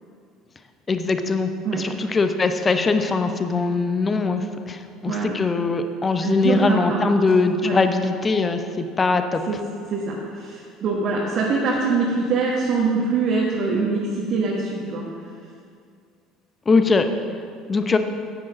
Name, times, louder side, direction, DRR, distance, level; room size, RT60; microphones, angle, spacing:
voice 1, 0.9-9.4 16.7-17.1 17.7-18.0, left 4 dB, 25° left, 8 dB, 0.8 m, -21 dB
voice 2, 5.1-5.4 6.2-7.1 7.6-7.8 9.5-9.6 9.9-15.0, right 4 dB, 45° right, -3 dB, 1.4 m, -23 dB
9.9 x 8.7 x 5.0 m, 2.3 s
figure-of-eight pair, 60°, 0 cm